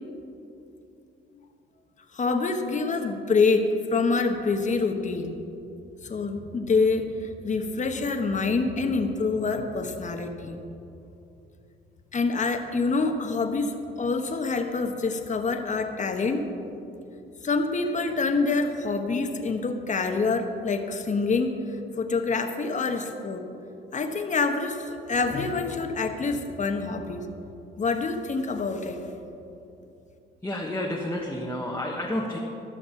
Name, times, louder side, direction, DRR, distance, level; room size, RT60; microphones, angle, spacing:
voice 1, 2.1-5.4 6.0-10.6 12.1-16.5 17.4-23.4 23.9-27.3 27.8-29.0, left 4 dB, 40° left, 5 dB, 1.1 m, -26 dB
voice 2, 30.4-32.4, left 1 dB, 10° left, -3 dB, 1.2 m, -30 dB
13.5 x 6.6 x 5.7 m, 2.8 s
cardioid pair, 90°, 20 cm